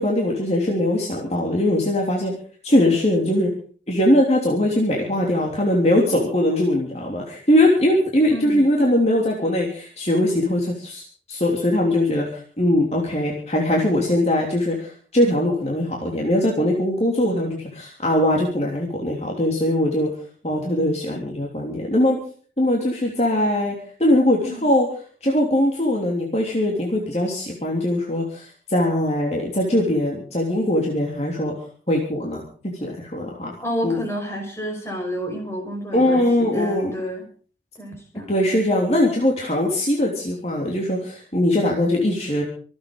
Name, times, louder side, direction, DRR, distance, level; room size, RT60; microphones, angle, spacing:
voice 1, 0.0-2.4 2.6-3.5 3.9-11.0 11.3-20.1 20.4-22.2 22.6-23.7 24.0-24.9 25.2-31.5 31.9-32.4 32.8-33.5 33.8-34.0 35.9-37.0 38.1-42.4, left 1 dB, 35° left, -1 dB, 3.2 m, -21 dB
voice 2, 8.3-8.7 24.4-24.6 33.6-37.3 37.8-38.3, equal, 15° left, 2 dB, 5.4 m, -30 dB
25.0 x 8.8 x 5.4 m, 0.43 s
head